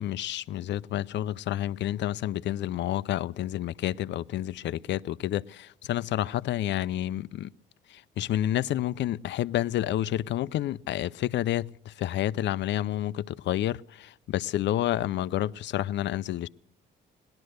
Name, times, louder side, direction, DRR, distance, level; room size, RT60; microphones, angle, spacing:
voice 1, 0.0-7.5 8.2-16.5, left 13 dB, 65° left, 0.5 m, -29 dB
18.0 x 11.5 x 6.5 m
cardioid pair, 90°, 20 cm